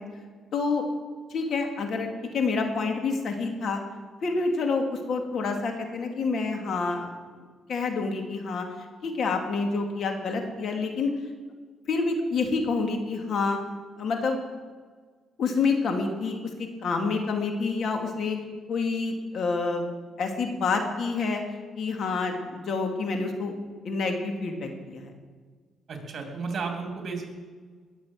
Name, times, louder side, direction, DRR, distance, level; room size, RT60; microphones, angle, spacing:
voice 1, 0.5-0.8 1.3-3.8 4.2-7.1 7.7-8.6 9.0-11.1 11.9-13.6 14.0-14.4 15.4-16.4 16.8-18.4 18.7-19.8 20.2-21.4 21.8-23.5 23.8-25.1, left 4 dB, 60° left, 4 dB, 2.5 m, -28 dB
voice 2, 25.9-27.3, right 4 dB, 50° right, 3 dB, 3.3 m, -33 dB
20.0 x 7.3 x 7.6 m, 1.5 s
cardioid pair, 90°, 0 cm